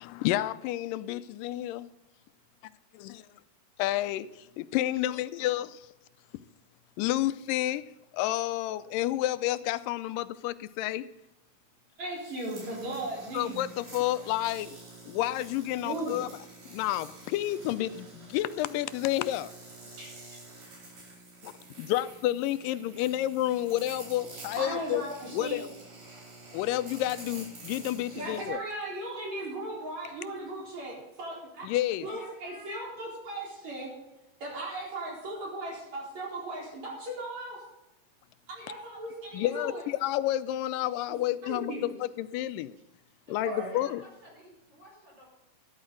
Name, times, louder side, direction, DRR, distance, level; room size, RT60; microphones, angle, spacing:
voice 1, 0.0-1.9 2.9-3.2 3.8-4.3 4.6-5.7 7.0-7.8 8.1-11.0 13.3-14.8 15.1-16.3 16.7-19.5 21.4-21.5 21.8-25.0 25.3-25.7 26.5-28.6 31.6-32.1 39.3-42.8 43.3-44.0, left 14 dB, 85° left, 2.2 m, -30 dB
voice 2, 12.0-13.6 15.8-16.2 20.0-20.4 24.6-25.6 28.2-31.7 32.0-33.9 34.4-37.6 38.5-39.8 41.1-41.8 43.5-43.7, right 1 dB, 55° right, 5.3 m, -37 dB
sound 1, 12.1-28.5, right 2 dB, 80° right, 6.1 m, -49 dB
voice 3, 32.0-33.0 43.3-45.3, equal, 30° right, 5.6 m, -52 dB
13.0 x 11.5 x 3.8 m
omnidirectional pair, 3.9 m